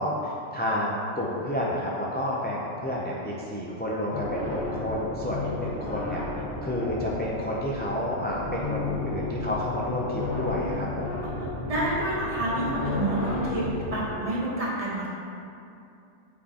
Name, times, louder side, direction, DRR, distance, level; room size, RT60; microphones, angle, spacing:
voice 1, 0.0-6.2 6.6-11.3, left 1 dB, 15° left, -5 dB, 0.4 m, -30 dB
sound 1, 4.1-14.2, left 3 dB, 60° left, 1.3 m, -33 dB
voice 2, 11.6-15.1, right 1 dB, 30° right, -6 dB, 1.2 m, -28 dB
8.2 x 4.5 x 2.9 m, 2.6 s
omnidirectional pair, 1.2 m